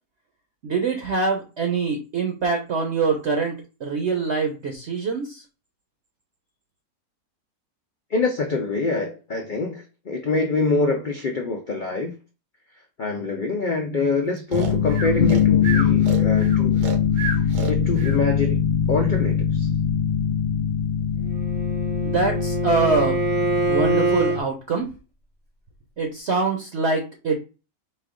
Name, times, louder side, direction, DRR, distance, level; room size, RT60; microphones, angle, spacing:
voice 1, 0.6-5.4 22.0-23.2 23.7-24.9 26.0-27.4, right 4 dB, 55° right, 0.9 m, -24 dB
voice 2, 8.1-12.1 13.0-16.9 17.7-18.6 18.9-19.7, left 3 dB, 80° left, 0.4 m, -25 dB
sound 1, 14.5-24.4, left 8 dB, 45° left, 0.9 m, -22 dB
Breathing, 14.5-18.2, right 4 dB, 85° right, 1.4 m, -31 dB
Bowed string instrument, 21.3-24.4, right 3 dB, 10° right, 0.5 m, -25 dB
4.2 x 2.4 x 3.6 m
omnidirectional pair, 1.7 m